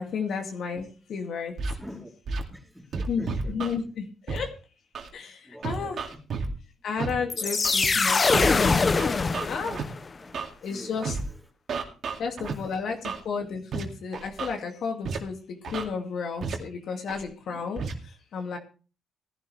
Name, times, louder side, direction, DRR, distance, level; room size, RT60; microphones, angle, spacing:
voice 1, 0.0-1.5 3.1-4.5 5.1-6.0 6.8-9.8 10.6-11.1 12.2-18.6, left 5 dB, 65° left, 3 dB, 2.2 m, -33 dB
Scratching (performance technique), 1.6-1.7 2.3-2.4 2.9-3.7 4.3-4.4 4.9-5.1 5.6-6.5 7.0-7.1 7.6-7.9 8.3-8.5 9.0-9.8 10.3-10.5 11.0-11.2 11.7-12.5 13.0-13.2 13.7-13.8 14.1-14.5 15.0-15.2 15.6-15.8 16.4-16.5 17.1-17.2 17.8-17.9, right 5 dB, 60° right, 2.4 m, -31 dB
voice 2, 1.7-2.1 2.5-3.5 5.4-6.4 7.3-7.6 10.1-11.5 12.1-12.8, equal, ahead, 1 dB, 3.4 m, -46 dB
sound 1, 7.3-10.1, left 4 dB, 30° left, 0.7 m, -23 dB
17.0 x 11.5 x 3.3 m, 0.36 s
cardioid pair, 90°, 0 cm